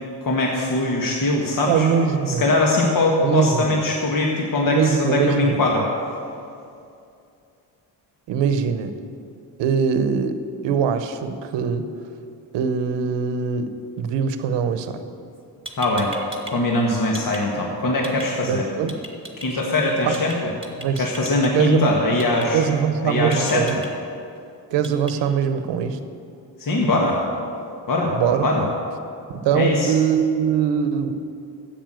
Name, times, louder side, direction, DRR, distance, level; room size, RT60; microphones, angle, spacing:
voice 1, 0.2-1.9 2.3-5.9 15.8-16.1 16.5-18.7 19.4-20.5 21.0-22.6 23.0-23.6 26.6-27.2 27.9-28.1 28.4-28.6 29.5-29.9, left 2 dB, 50° left, -1 dB, 1.7 m, -21 dB
voice 2, 1.7-2.5 3.2-3.7 4.7-5.6 8.3-9.0 9.6-11.9 12.5-15.1 18.5-19.0 20.0-20.2 20.8-21.1 21.5-21.9 22.5-23.8 24.7-26.0 28.1-28.5 29.3-31.2, right 7 dB, 85° right, 10 dB, 0.9 m, -22 dB
sound 1, 15.3-15.4 15.7-16.5 16.8-17.4 18.0-18.3 18.9-19.5 20.1-20.4 20.6-21.5 22.2-22.5 23.3-23.9 24.8-25.1, right 2 dB, 15° right, 2.0 m, -36 dB
10.5 x 8.5 x 7.6 m, 2.5 s
cardioid pair, 70°, 42 cm